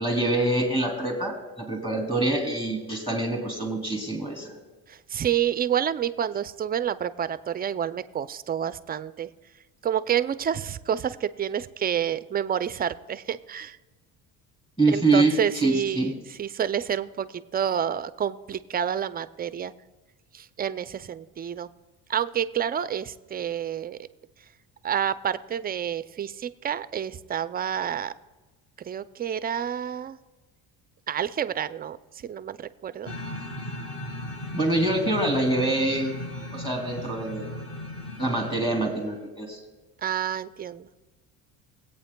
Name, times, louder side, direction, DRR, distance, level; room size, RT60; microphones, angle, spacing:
voice 1, 0.0-4.6 14.8-16.2 34.5-36.1 36.5-37.5 38.2-39.6, right 2 dB, 15° left, 3 dB, 2.5 m, -25 dB
voice 2, 4.9-9.3 9.8-13.8 14.9-19.7 20.3-21.7 22.1-24.1 24.8-28.1 28.8-30.2 31.1-32.0 32.2-33.1 40.0-40.9, right 9 dB, 25° right, 14 dB, 0.3 m, -29 dB
sound 1, 33.1-39.3, left 1 dB, 40° left, 1.9 m, -37 dB
20.0 x 8.5 x 2.2 m, 1.2 s
supercardioid pair, 100°, 36 cm